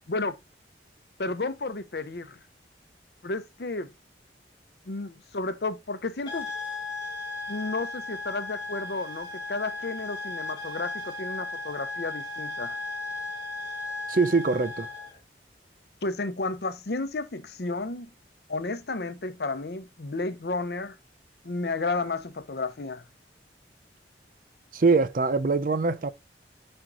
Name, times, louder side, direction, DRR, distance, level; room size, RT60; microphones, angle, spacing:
voice 1, 1.2-2.4 3.2-3.9 4.9-6.5 7.5-12.8 16.0-18.1 18.5-21.0 21.4-23.0, left 3 dB, 65° left, 0.7 m, -32 dB
sound 1, 6.2-15.2, left 3 dB, 25° left, 1.2 m, -36 dB
voice 2, 14.1-14.9 24.7-26.1, right 4 dB, 50° right, 0.5 m, -23 dB
6.1 x 4.4 x 3.8 m
head